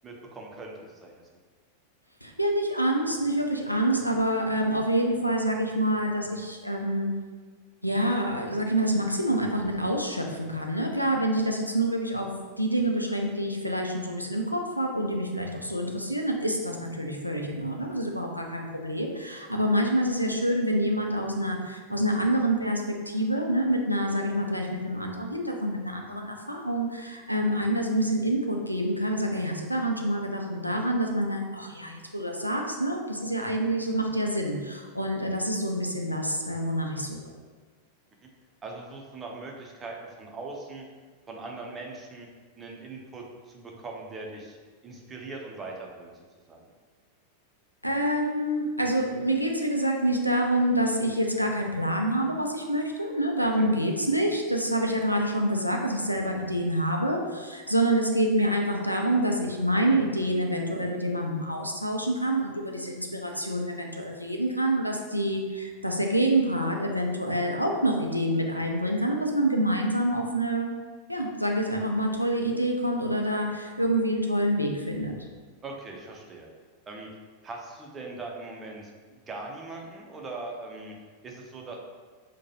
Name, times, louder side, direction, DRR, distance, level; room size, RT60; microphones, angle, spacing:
voice 1, 0.0-1.1 4.1-4.2 33.4-33.6 38.2-38.3 38.6-40.8 41.3-42.3 42.6-44.6 44.8-46.6 53.6-53.7 56.1-56.4 75.6-76.5 76.9-77.1 77.4-81.0 81.2-81.8, right 3 dB, 20° right, 0 dB, 0.6 m, -41 dB
voice 2, 2.2-7.1 7.8-12.3 12.6-37.2 47.8-70.7 71.1-75.1, right 1 dB, 90° left, 1 dB, 0.4 m, -27 dB
4.6 x 2.2 x 2.9 m, 1.5 s
figure-of-eight pair, 90°, 0 cm